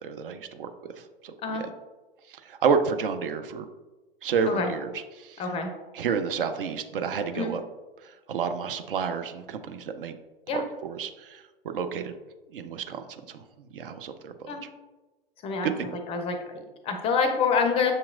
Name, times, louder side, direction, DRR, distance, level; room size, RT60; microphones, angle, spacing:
voice 1, 0.0-0.7 1.0-1.7 2.3-3.7 4.2-5.5 5.9-7.6 8.0-10.2 10.5-11.4 11.7-12.1 12.5-14.3 15.6-15.9, right 6 dB, 65° right, 8 dB, 0.5 m, -30 dB
voice 2, 5.4-5.7 7.3-7.5 10.5-10.6 14.5-14.6 15.4-15.7 16.1-17.9, left 5 dB, 20° left, 5 dB, 0.4 m, -27 dB
6.3 x 2.9 x 2.4 m, 1.2 s
figure-of-eight pair, 100°, 29 cm